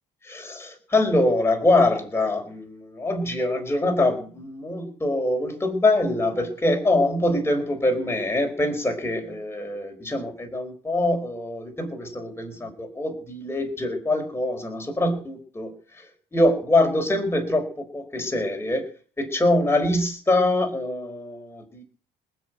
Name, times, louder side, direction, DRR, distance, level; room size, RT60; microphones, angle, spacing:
voice 1, 0.3-15.7 16.3-17.7 17.9-18.9 19.2-21.8, left 1 dB, 15° left, 3 dB, 4.3 m, -24 dB
19.5 x 6.4 x 9.2 m, 0.42 s
cardioid pair, 110°, 17 cm